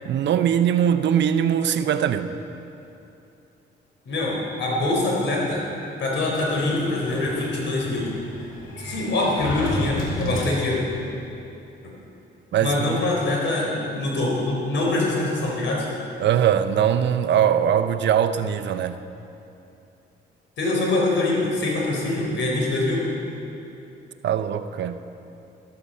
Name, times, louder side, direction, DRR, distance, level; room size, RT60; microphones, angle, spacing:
voice 1, 0.0-2.4 12.5-13.0 16.2-19.0 24.2-25.0, right 9 dB, 65° right, 10 dB, 0.7 m, -21 dB
voice 2, 4.1-5.6 6.0-8.1 8.8-10.8 11.8-11.9 12.6-15.9 20.6-23.0, left 2 dB, 70° left, -2 dB, 4.2 m, -24 dB
Sliding door, 6.3-11.0, left 1 dB, 90° left, 2.4 m, -32 dB
13.5 x 12.5 x 5.6 m, 2.8 s
cardioid pair, 90°, 20 cm